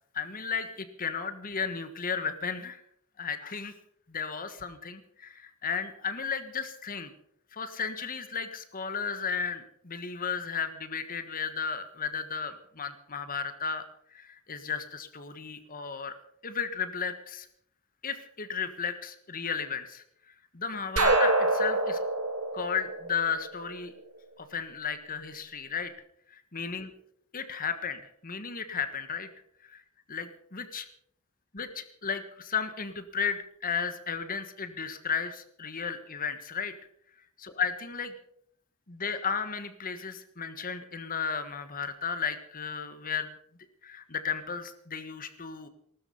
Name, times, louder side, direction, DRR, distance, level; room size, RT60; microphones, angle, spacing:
voice 1, 0.1-2.8 3.2-3.7 4.1-7.1 7.5-13.8 14.1-16.1 16.4-17.5 18.0-20.0 20.5-22.0 22.5-23.9 24.4-25.9 26.3-26.9 27.3-29.3 30.1-30.9 31.5-36.7 37.4-38.1 38.9-43.3 43.8-45.7, left 6 dB, 40° left, 10 dB, 1.3 m, -34 dB
sound 1, 21.0-23.8, right 2 dB, 75° right, 3.1 m, -26 dB
19.5 x 13.0 x 5.4 m, 0.68 s
head